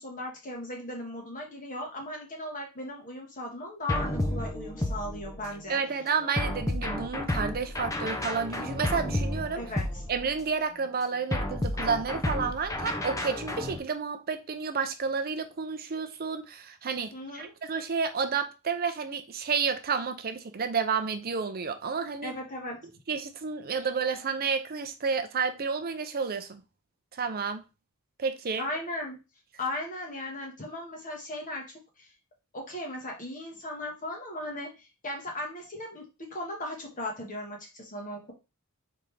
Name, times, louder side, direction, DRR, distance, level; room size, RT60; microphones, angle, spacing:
voice 1, 0.0-5.8 9.6-9.9 17.1-17.5 22.2-22.9 28.6-29.2 29.6-32.1 32.5-38.3, left 1 dB, 35° left, 1.4 m, -37 dB
sound 1, 3.9-5.6 6.4-10.5 11.3-13.8, left 1 dB, 15° left, 0.5 m, -31 dB
voice 2, 5.7-9.6 10.1-22.3 23.1-26.6 27.2-27.6 28.2-28.7, right 5 dB, 45° right, 0.6 m, -30 dB
4.0 x 3.5 x 3.3 m
head